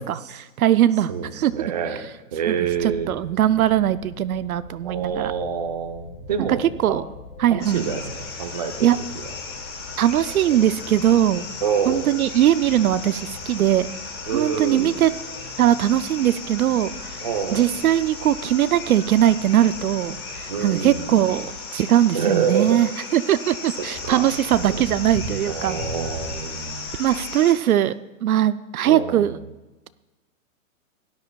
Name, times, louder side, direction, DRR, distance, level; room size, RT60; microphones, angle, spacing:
voice 1, 0.1-1.5 2.5-2.6 2.8-5.3 6.6-7.0 7.4-7.8 8.8-9.0 10.0-11.5 11.9-13.9 14.3-15.1 15.6-17.2 17.5-25.8 27.0-27.9 28.2-29.4, right 11 dB, 80° right, 14 dB, 0.6 m, -20 dB
voice 2, 1.1-2.0 2.3-3.1 4.8-6.6 6.9-7.0 7.5-8.9 9.2-9.3 10.5-10.6 11.6-12.1 14.3-14.9 17.2-17.6 20.5-21.1 22.1-22.8 24.0-24.3 24.7-24.9 25.4-26.8 28.8-29.3, right 7 dB, 30° right, 6 dB, 0.6 m, -26 dB
sound 1, 2.6-21.6, left 3 dB, 65° left, 3.6 m, -44 dB
sound 2, 7.6-27.5, left 4 dB, 20° left, 1.2 m, -35 dB
17.0 x 11.0 x 2.3 m, 1.1 s
hypercardioid pair, 170°, 42 cm